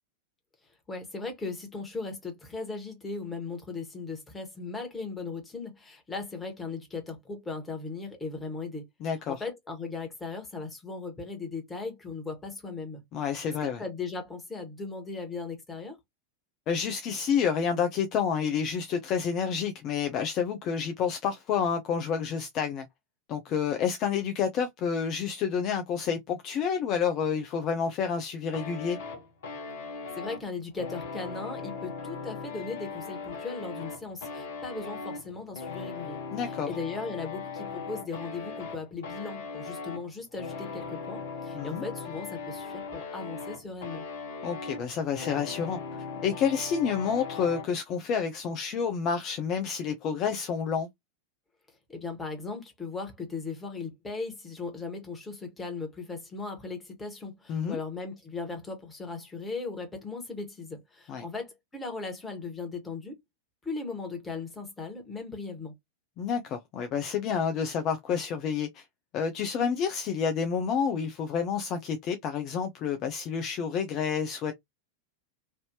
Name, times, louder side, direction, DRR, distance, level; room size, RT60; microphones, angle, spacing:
voice 1, 0.9-8.8 9.3-13.0 13.6-16.0 30.1-44.0 51.9-63.2 63.6-65.7, left 4 dB, 15° left, 1.4 m, -38 dB
voice 2, 9.0-9.4 13.1-13.8 16.7-22.9 23.3-29.0 36.3-36.7 41.5-41.9 44.4-45.8 46.2-50.9 57.5-57.8 61.1-61.2 66.2-68.8 69.1-74.5, left 7 dB, 35° left, 0.5 m, -29 dB
sound 1, 28.5-47.7, left 4 dB, 55° left, 1.1 m, -39 dB
3.2 x 2.7 x 2.8 m
figure-of-eight pair, 90°, 0 cm